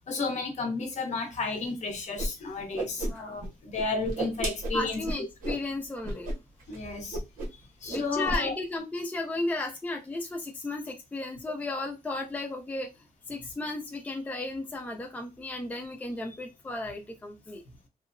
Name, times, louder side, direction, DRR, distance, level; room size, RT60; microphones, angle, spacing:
voice 1, 0.1-5.0 6.7-7.2 7.8-8.5, left 3 dB, 55° left, 0.8 m, -32 dB
Whoosh swoosh swish, 2.2-2.3 2.6-3.5 3.7-5.6 6.0-6.3 6.6-6.8 7.1-7.6 7.9-8.4, right 1 dB, 80° right, 0.9 m, -32 dB
voice 2, 3.0-3.4 4.7-6.3 7.5-17.6, left 2 dB, 10° left, 0.4 m, -35 dB
2.7 x 2.0 x 2.5 m
cardioid pair, 130°, 14 cm